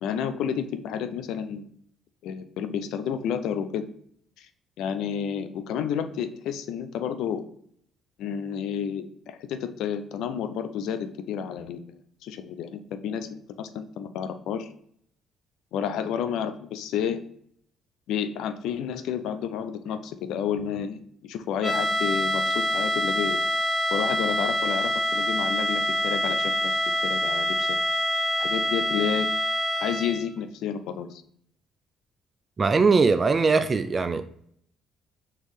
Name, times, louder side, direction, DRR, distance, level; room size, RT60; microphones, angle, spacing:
voice 1, 0.0-1.6 2.2-3.9 4.4-4.5 4.8-7.5 8.2-11.8 12.2-14.7 15.7-17.2 18.1-23.4 23.9-26.7 27.0-27.8 28.4-29.3 29.8-31.2, left 8 dB, 75° left, 10 dB, 0.5 m, -30 dB
sound 1, 21.6-30.3, equal, 5° left, 0.7 m, -26 dB
voice 2, 32.6-34.2, right 4 dB, 35° right, 10 dB, 0.4 m, -21 dB
4.4 x 3.0 x 3.4 m, 0.66 s
supercardioid pair, 70°, 0 cm